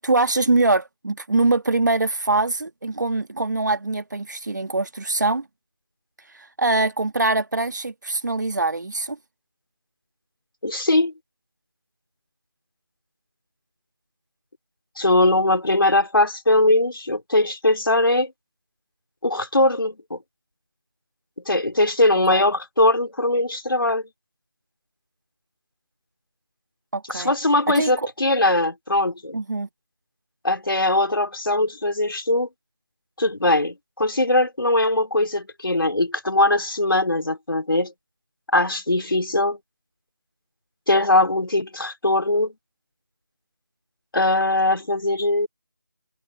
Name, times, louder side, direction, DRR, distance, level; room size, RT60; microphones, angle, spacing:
voice 1, 0.0-5.5 6.3-9.2 22.3-22.4 26.9-27.3 27.7-28.1 29.3-29.7, right 2 dB, 55° right, 1.8 m, -23 dB
voice 2, 10.6-11.1 15.0-18.3 19.2-20.2 21.5-24.0 27.1-29.4 30.4-32.5 33.2-37.9 38.5-39.6 40.9-42.5 44.1-45.5, left 2 dB, 75° left, 2.5 m, -20 dB
figure-of-eight pair, 165°, 12 cm